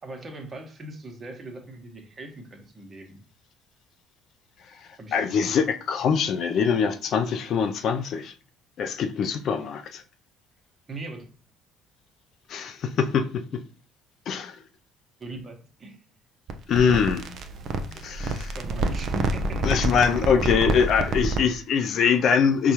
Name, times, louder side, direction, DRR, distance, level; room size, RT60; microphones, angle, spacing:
voice 1, 0.0-3.2 5.0-5.2 5.4-5.6 9.6-9.7 10.9-11.3 15.2-16.0 17.9-19.7, right 2 dB, 30° right, 1.0 m, -40 dB
voice 2, 5.1-8.3 8.8-10.0 12.5-13.6 14.3-14.6 16.7-17.3 18.0-18.5 19.6-22.7, left 6 dB, 50° left, 0.3 m, -23 dB
sound 1, 16.5-21.6, right 2 dB, 50° right, 0.5 m, -28 dB
5.3 x 2.3 x 2.9 m
figure-of-eight pair, 55°, 0 cm